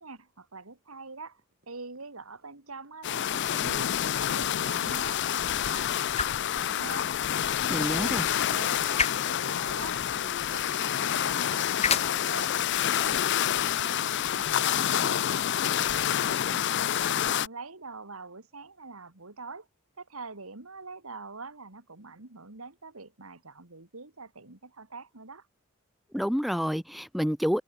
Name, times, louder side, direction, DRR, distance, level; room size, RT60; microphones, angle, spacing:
voice 1, 0.0-1.4 1.7-7.1 7.9-15.2 15.9-16.7 17.0-19.7 20.0-25.5, right 3 dB, 80° right, 2.7 m, -44 dB
sound 1, 0.9-1.1 1.4-9.8 10.3-10.9 11.3-16.5, right 2 dB, 50° right, 5.4 m, -58 dB
sound 2, 3.0-17.5, left 10 dB, 55° left, 0.5 m, -28 dB
voice 2, 7.7-8.3 26.1-27.6, equal, ahead, 0.6 m, -28 dB
sound 3, 11.7-15.4, left 6 dB, 30° left, 2.6 m, -38 dB
head